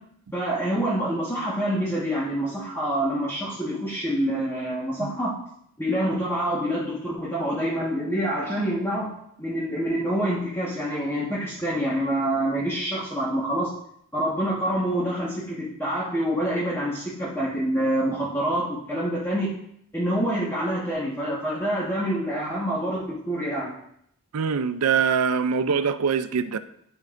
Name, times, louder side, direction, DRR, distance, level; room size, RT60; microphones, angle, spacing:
voice 1, 0.3-5.4 5.8-9.1 9.4-13.7 14.1-19.5 19.9-23.7, right 1 dB, 10° left, -7 dB, 1.4 m, -26 dB
voice 2, 24.3-26.6, right 6 dB, 90° right, 12 dB, 0.5 m, -23 dB
10.5 x 5.3 x 2.5 m, 0.70 s
head